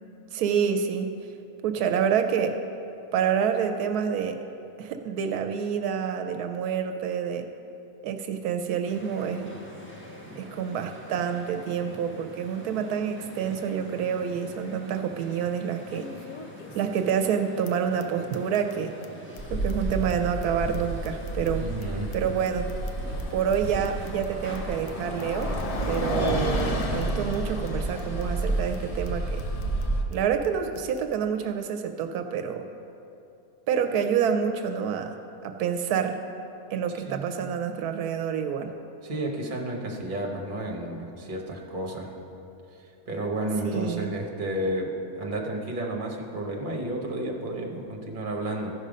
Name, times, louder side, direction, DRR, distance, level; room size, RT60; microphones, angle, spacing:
voice 1, 0.3-1.1 1.6-2.6 3.1-4.4 4.8-7.5 8.0-9.5 10.4-16.1 16.7-18.9 19.5-21.7 22.1-22.7 23.3-25.5 25.9-29.4 30.1-32.7 33.7-35.1 35.4-36.2 36.7-38.7 43.6-44.1, right 7 dB, 80° right, 6 dB, 1.1 m, -28 dB
sound 1, 8.9-27.1, equal, 10° left, 0.9 m, -45 dB
sound 2, 15.9-17.4 17.6-17.7 18.0-18.1 18.3-18.7 19.0-19.1 19.3-19.4 19.7-21.8 22.1-23.2 23.5-23.6 23.8-24.3 24.5-24.6 24.9-25.0 25.2-25.6 25.9-26.0 26.3-26.4 26.6-27.0 27.3-27.4 27.7-27.8 28.0-28.4 28.7-28.8 29.0-29.1 29.4-29.8 30.1-30.2 30.4-30.5 30.7-31.2, left 6 dB, 85° left, 1.1 m, -48 dB
Bus, 19.4-30.0, right 1 dB, 40° left, 0.5 m, -30 dB
voice 2, 21.6-22.1 26.0-26.5 37.1-37.2 39.0-42.1 42.7-48.7, right 1 dB, 35° right, 1 dB, 1.1 m, -32 dB
14.0 x 5.5 x 5.0 m, 2.8 s
omnidirectional pair, 1.6 m